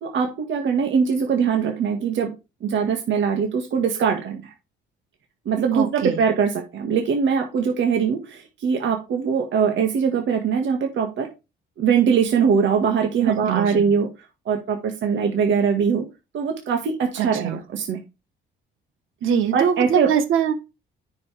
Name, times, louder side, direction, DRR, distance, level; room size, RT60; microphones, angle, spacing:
voice 1, 0.0-2.3 2.6-4.5 5.5-11.3 11.8-14.1 14.5-16.1 16.3-18.0 19.5-20.1, right 6 dB, 70° right, 1.9 m, -22 dB
voice 2, 5.7-6.2 13.2-13.9 17.2-17.6 19.2-20.5, right 8 dB, 90° right, 1.4 m, -23 dB
9.5 x 5.5 x 3.4 m
cardioid pair, 90°, 20 cm